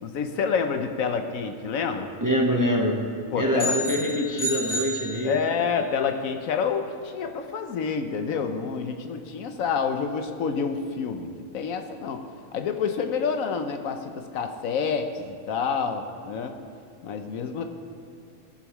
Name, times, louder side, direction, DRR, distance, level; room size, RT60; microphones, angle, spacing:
voice 1, 0.0-2.1 3.3-3.8 5.2-11.3 11.5-12.2 12.5-16.5 17.0-17.6, left 6 dB, 75° left, 6 dB, 1.1 m, -28 dB
voice 2, 2.2-3.0 3.4-5.4, equal, 15° right, 0 dB, 0.7 m, -24 dB
sound 1, 3.6-5.8, equal, 30° left, 1.8 m, -31 dB
19.0 x 7.1 x 3.1 m, 2.3 s
omnidirectional pair, 1.5 m